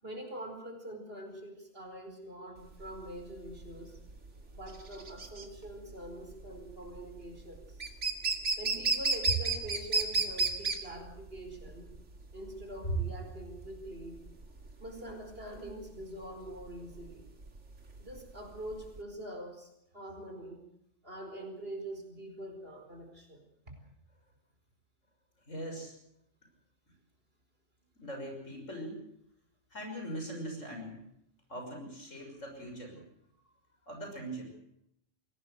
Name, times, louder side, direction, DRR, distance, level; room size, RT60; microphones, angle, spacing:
voice 1, 0.0-4.0 4.5-7.8 8.6-11.9 12.3-14.2 14.8-17.3 18.0-20.6 21.0-23.7, right 1 dB, 50° right, 4 dB, 5.0 m, -44 dB
sound 1, 2.6-19.0, right 4 dB, 70° right, 2.7 m, -34 dB
voice 2, 25.5-25.9 28.0-29.0 29.7-31.0 31.5-33.0 33.9-34.5, equal, 80° left, 3 dB, 6.5 m, -41 dB
22.5 x 17.5 x 8.0 m, 0.76 s
omnidirectional pair, 1.3 m